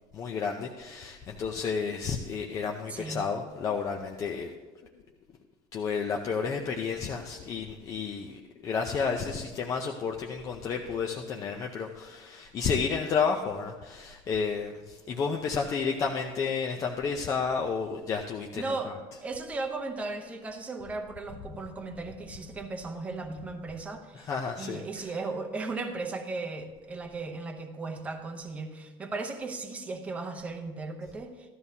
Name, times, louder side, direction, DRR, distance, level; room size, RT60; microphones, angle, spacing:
voice 1, 0.1-4.5 5.7-18.6 24.3-25.0, left 5 dB, 25° left, 1 dB, 0.6 m, -31 dB
voice 2, 2.9-3.3 18.5-18.9 19.2-24.3 24.6-31.5, right 3 dB, 10° right, 4 dB, 0.7 m, -36 dB
15.5 x 12.5 x 2.8 m, 1.3 s
cardioid pair, 180°, 13 cm